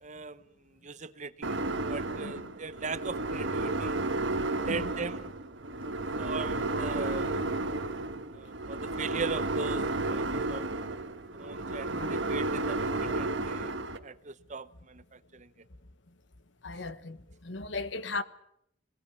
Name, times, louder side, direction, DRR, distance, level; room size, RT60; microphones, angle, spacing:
voice 1, 0.0-1.6 1.9-4.0 4.6-5.3 6.2-7.4 8.3-10.7 11.3-13.7 14.0-15.5, right 4 dB, 40° right, 0.8 m, -39 dB
sound 1, 1.4-14.0, right 2 dB, 85° right, 1.5 m, -32 dB
voice 2, 16.6-18.2, left 3 dB, 85° left, 1.2 m, -37 dB
21.5 x 18.5 x 8.6 m
head